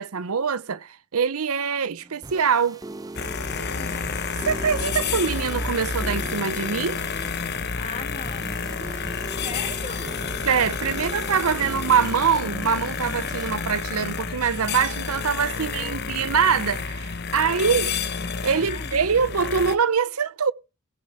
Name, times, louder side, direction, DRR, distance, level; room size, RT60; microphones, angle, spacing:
voice 1, 0.0-2.8 4.4-7.0 10.4-17.9 18.4-20.5, right 6 dB, 85° right, 0.7 m, -24 dB
sound 1, 2.0-14.8, right 2 dB, 15° right, 0.7 m, -40 dB
sound 2, 3.1-19.8, left 5 dB, 50° left, 1.1 m, -30 dB
voice 2, 7.7-9.0 9.4-10.1 15.5-16.0 17.6-18.0 18.4-18.9, left 3 dB, 30° left, 2.6 m, -40 dB
17.5 x 7.6 x 4.5 m
head